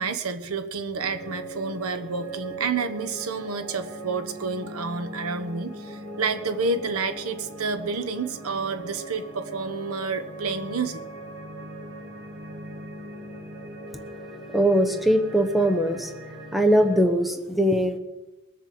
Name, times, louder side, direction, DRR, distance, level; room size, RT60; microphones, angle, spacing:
voice 1, 0.0-11.0, right 4 dB, 75° right, 9 dB, 1.1 m, -29 dB
sound 1, 1.0-17.0, right 1 dB, 55° right, 2.5 m, -40 dB
voice 2, 14.5-16.1 16.5-18.0, equal, ahead, 5 dB, 1.0 m, -21 dB
21.0 x 7.5 x 7.7 m, 1.1 s
head